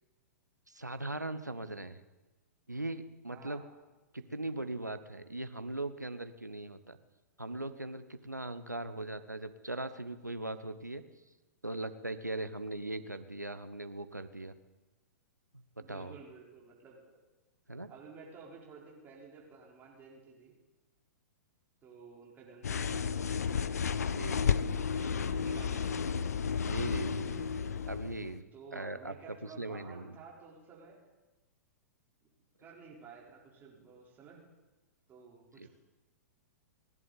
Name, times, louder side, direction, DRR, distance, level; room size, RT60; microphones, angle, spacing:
voice 1, 0.7-2.0 2.7-3.6 4.1-7.0 7.4-11.0 11.6-14.5 15.5-15.6 15.9-16.1 17.7-17.9 24.1-24.4 26.6-27.6 27.9-28.4 28.7-29.1 29.6-30.2 35.6-35.7, right 2 dB, 90° right, 10 dB, 1.1 m, -39 dB
voice 2, 3.3-3.7 8.8-9.1 15.8-17.0 17.9-20.5 21.8-23.5 25.0-26.0 28.5-31.0 32.6-34.4 35.1-35.7, right 5 dB, 20° right, -3 dB, 3.9 m, -52 dB
sound 1, 22.6-28.4, left 6 dB, 65° left, 0.6 m, -32 dB
30.0 x 11.0 x 4.1 m, 1.1 s
figure-of-eight pair, 110°, 9 cm